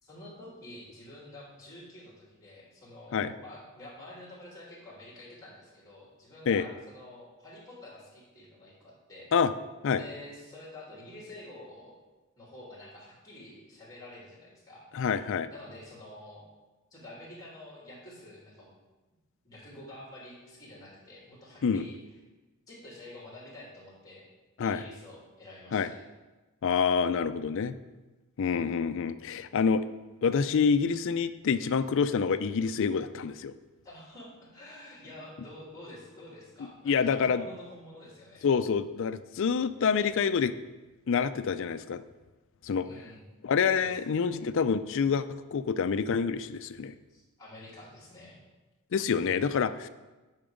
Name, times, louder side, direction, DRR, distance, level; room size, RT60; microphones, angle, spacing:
voice 1, 0.0-9.3 10.0-11.9 12.4-14.9 15.5-16.4 16.9-18.7 19.4-22.0 22.7-24.3 24.6-26.0 33.8-38.5 42.8-43.3 43.8-44.0 47.1-48.4, left 1 dB, 15° left, -4 dB, 2.9 m, -48 dB
voice 2, 14.9-15.5 21.6-21.9 24.6-24.8 25.7-25.9 26.6-27.7 28.4-29.9 30.2-33.5 36.9-37.4 38.4-40.5 41.1-42.0 42.6-42.9 43.4-45.2 45.5-46.9 48.9-49.9, left 6 dB, 60° left, 12 dB, 0.4 m, -27 dB
8.9 x 5.8 x 5.1 m, 1.2 s
head